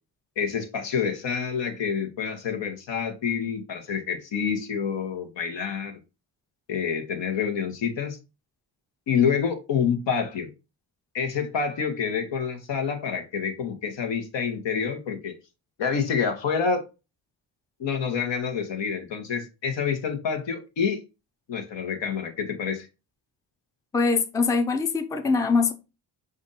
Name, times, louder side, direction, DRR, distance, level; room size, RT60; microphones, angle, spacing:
voice 1, 0.4-6.0 6.7-8.2 9.1-10.5 11.1-15.3 15.8-16.8 17.8-21.0 21.5-22.9, left 6 dB, 65° left, 1.2 m, -27 dB
voice 2, 23.9-25.7, left 4 dB, 10° left, 0.5 m, -23 dB
5.1 x 2.6 x 4.0 m
cardioid pair, 85°, 47 cm